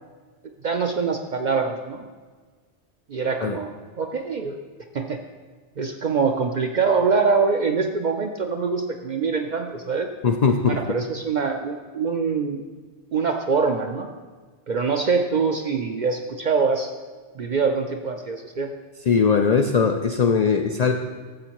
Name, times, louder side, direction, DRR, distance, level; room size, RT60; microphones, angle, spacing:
voice 1, 0.6-2.0 3.1-4.6 4.9-5.2 5.8-10.1 10.7-12.6 13.1-14.1 14.7-16.9 17.4-18.7, right 5 dB, 60° right, 4 dB, 0.5 m, -24 dB
voice 2, 10.2-10.8 19.1-20.9, left 5 dB, 85° left, 5 dB, 0.3 m, -20 dB
12.5 x 7.1 x 3.0 m, 1.5 s
omnidirectional pair, 1.2 m